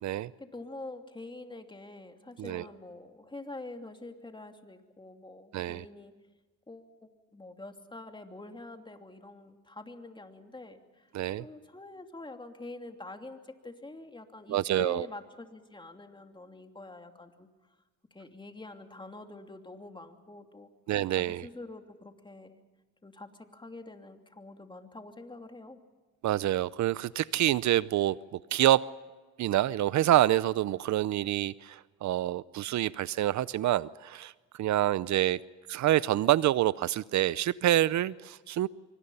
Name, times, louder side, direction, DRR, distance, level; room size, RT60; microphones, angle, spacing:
voice 1, 0.4-6.2 6.7-11.1 11.4-17.5 18.1-20.7 21.1-22.6 23.0-25.8, left 2 dB, 15° left, 5 dB, 2.8 m, -46 dB
voice 2, 5.5-5.8 11.1-11.4 14.5-15.1 20.9-21.5 26.2-28.2 28.5-28.8 29.4-34.3 34.6-35.4 35.7-38.7, right 13 dB, 70° right, 19 dB, 0.6 m, -27 dB
25.5 x 24.5 x 5.6 m, 1.3 s
cardioid pair, 90°, 30 cm